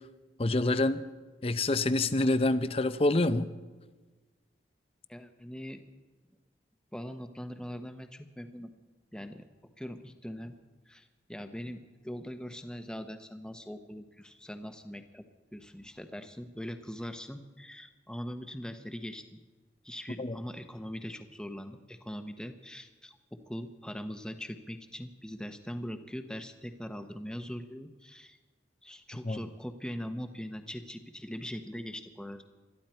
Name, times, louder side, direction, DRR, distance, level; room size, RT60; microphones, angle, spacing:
voice 1, 0.4-1.0 1.4-3.5 20.2-20.4 29.2-29.4, left 2 dB, 30° left, 12 dB, 0.6 m, -26 dB
voice 2, 5.1-5.8 6.9-8.7 9.1-9.5 9.8-10.6 10.9-15.2 15.5-19.4 19.8-23.2 23.5-28.4 28.8-32.4, equal, 5° left, 7 dB, 0.9 m, -41 dB
21.0 x 13.5 x 4.4 m, 1.3 s
head